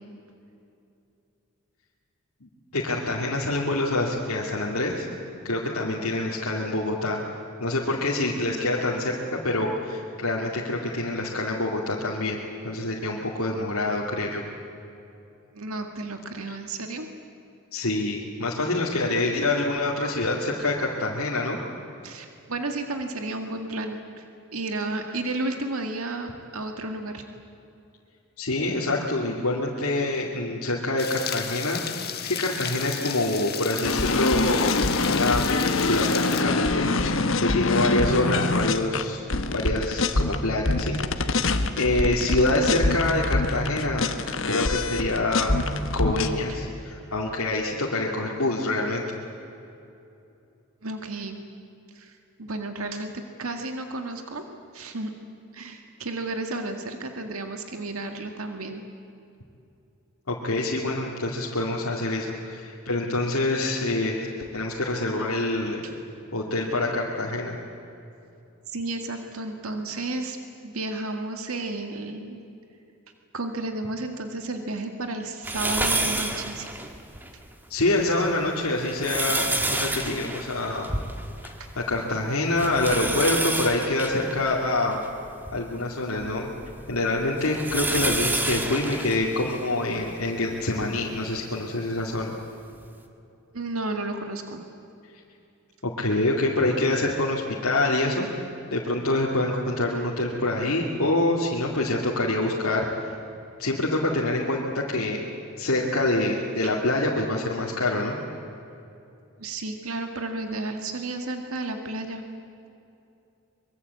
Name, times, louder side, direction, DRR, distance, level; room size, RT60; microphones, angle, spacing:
voice 1, 2.4-5.1 5.4-12.4 12.6-14.4 17.7-21.6 28.4-34.8 35.1-39.2 39.5-41.5 41.8-45.6 45.9-49.0 60.3-64.3 64.5-65.8 66.3-67.6 77.7-80.9 81.8-85.0 85.5-86.5 86.9-92.3 95.8-98.3 98.7-103.0 103.6-105.2 105.6-108.2, left 2 dB, 85° left, -4 dB, 2.6 m, -26 dB
voice 2, 15.5-17.1 22.0-24.2 24.5-27.2 50.8-51.4 51.9-53.1 53.4-54.4 54.7-55.1 55.5-58.8 65.8-65.9 68.7-70.4 70.6-72.5 73.3-76.7 81.6-81.7 93.5-94.6 106.6-106.7 109.4-112.2, right 2 dB, 80° right, 5 dB, 1.8 m, -32 dB
sound 1, 31.0-36.4, left 10 dB, 45° left, 1.5 m, -34 dB
sound 2, 33.8-40.4 40.6-46.3, left 3 dB, 65° left, 1.3 m, -25 dB
sound 3, 75.4-77.3 77.8-77.9 78.7-81.7 81.9-82.0 82.6-85.6 86.2-90.1 90.8-90.9 92.2-92.3, right 2 dB, 10° right, 1.7 m, -29 dB
24.5 x 23.0 x 8.4 m, 2.8 s
head